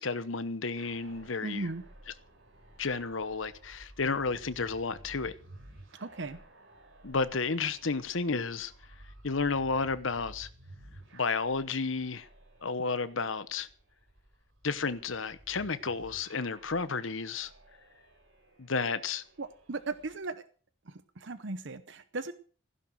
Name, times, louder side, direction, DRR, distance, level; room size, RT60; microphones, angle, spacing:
voice 1, 0.0-1.7 2.8-5.3 7.0-8.7 9.2-10.5 11.1-12.3 12.6-13.7 14.6-17.5 18.6-19.2, left 4 dB, 75° left, 1.0 m, -32 dB
sound 1, 0.7-20.2, right 1 dB, 85° right, 5.2 m, -55 dB
voice 2, 1.4-1.8 6.0-6.4 19.4-20.4 20.9-22.3, right 3 dB, 65° right, 0.8 m, -37 dB
15.5 x 10.5 x 6.3 m
head